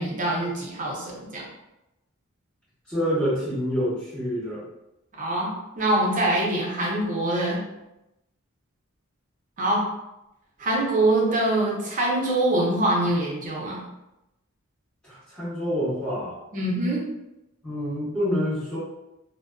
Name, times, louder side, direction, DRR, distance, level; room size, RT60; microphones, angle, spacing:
voice 1, 0.0-1.4 5.2-7.6 9.6-9.9 10.6-13.8 16.5-17.1, right 1 dB, 40° right, -3 dB, 0.7 m, -24 dB
voice 2, 2.9-4.6 15.0-16.4 17.6-18.8, equal, 5° left, -14 dB, 1.0 m, -27 dB
2.5 x 2.1 x 2.3 m, 0.91 s
head